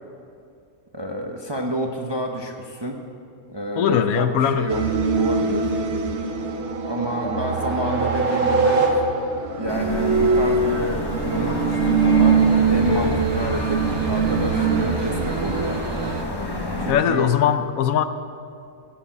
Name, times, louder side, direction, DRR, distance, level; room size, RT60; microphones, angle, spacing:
voice 1, 0.9-3.0 3.5-4.8 5.1-5.7 6.9-9.1 9.6-15.8 16.8-17.4, right 1 dB, 25° right, 2 dB, 0.6 m, -29 dB
voice 2, 3.8-4.7 16.9-18.0, left 9 dB, 75° left, 11 dB, 1.1 m, -20 dB
sound 1, 4.7-16.2, right 5 dB, 55° right, 1.1 m, -23 dB
sound 2, 6.2-9.5, right 3 dB, 75° right, 1.9 m, -23 dB
sound 3, 9.7-16.9, left 1 dB, 20° left, 0.8 m, -29 dB
15.0 x 6.9 x 7.3 m, 2.5 s
omnidirectional pair, 1.5 m